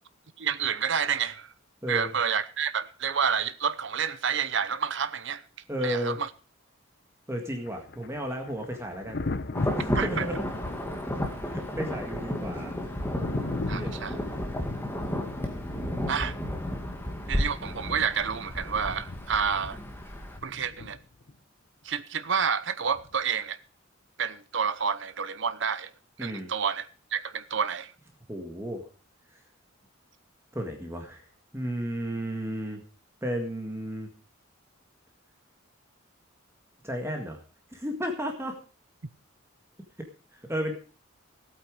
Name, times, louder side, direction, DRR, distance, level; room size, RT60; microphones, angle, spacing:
voice 1, 0.4-1.5 1.9-5.4 5.8-6.3 10.0-10.2 13.7-14.1 16.1-16.3 17.3-19.8 20.4-21.0 21.8-23.6 24.2-25.9 26.2-27.9, right 7 dB, 60° right, 0.8 m, -29 dB
voice 2, 1.8-2.1 5.7-6.2 7.3-9.2 9.7-10.4 11.4-12.7 13.7-14.3 15.7-16.2 26.2-26.5 28.3-28.8 30.5-31.2 31.5-32.8 33.2-34.1 36.8-37.4 37.7-38.6 40.3-40.7, equal, 15° right, 1.9 m, -33 dB
Thunder, 7.7-21.3 22.9-23.2, left 2 dB, 50° left, 0.8 m, -38 dB
Insect / Thunder / Rain, 9.5-20.4, left 1 dB, 10° left, 1.8 m, -33 dB
16.0 x 9.0 x 5.0 m
head